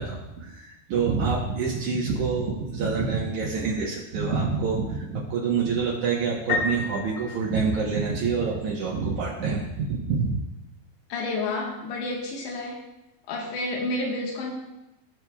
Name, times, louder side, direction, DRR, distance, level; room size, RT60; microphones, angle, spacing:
voice 1, 0.0-10.4, right 5 dB, 85° right, -4 dB, 1.7 m, -27 dB
Piano, 6.5-8.3, left 3 dB, 50° left, 1.0 m, -30 dB
voice 2, 11.1-12.8 13.3-14.5, left 2 dB, 90° left, -1 dB, 3.7 m, -30 dB
18.0 x 6.2 x 2.3 m, 0.93 s
omnidirectional pair, 4.9 m